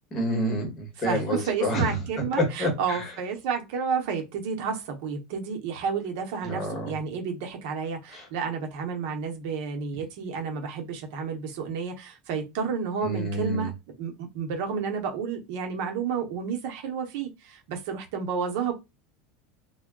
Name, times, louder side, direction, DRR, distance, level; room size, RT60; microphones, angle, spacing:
voice 1, 0.1-2.0 2.4-3.0 6.4-7.0 8.1-8.2 13.0-13.7, equal, 30° left, 1.1 m, -28 dB
voice 2, 1.0-13.7 14.0-18.7, right 6 dB, 65° right, 0.7 m, -31 dB
2.2 x 2.1 x 3.6 m
supercardioid pair, 145°, 0 cm